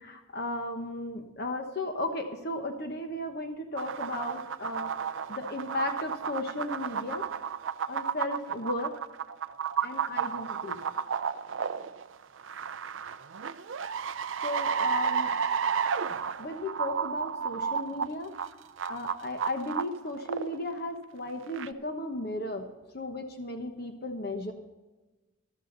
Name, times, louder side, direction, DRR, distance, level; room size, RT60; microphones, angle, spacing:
voice 1, 0.0-7.3 7.9-8.9 9.8-10.8 14.4-15.3 16.4-18.4 18.9-22.7 22.9-24.5, left 1 dB, 50° left, 5 dB, 1.1 m, -35 dB
sound 1, 3.8-20.7 21.5-21.7, right 7 dB, 70° right, 0.5 m, -32 dB
14.5 x 12.5 x 4.0 m, 1.1 s
head